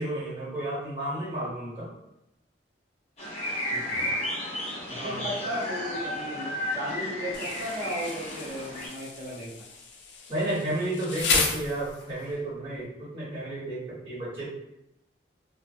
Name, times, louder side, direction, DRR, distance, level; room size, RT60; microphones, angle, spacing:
voice 1, 0.0-1.9 5.0-5.2 10.3-14.5, right 1 dB, 25° right, -11 dB, 1.3 m, -32 dB
sound 1, 3.2-8.9, left 1 dB, 35° left, 0.7 m, -33 dB
voice 2, 3.7-4.1 4.9-6.5 6.7-9.7, equal, 65° right, -10 dB, 0.8 m, -35 dB
Insect, 7.3-12.3, left 4 dB, 75° left, 0.4 m, -32 dB
2.3 x 2.2 x 2.5 m, 0.86 s
head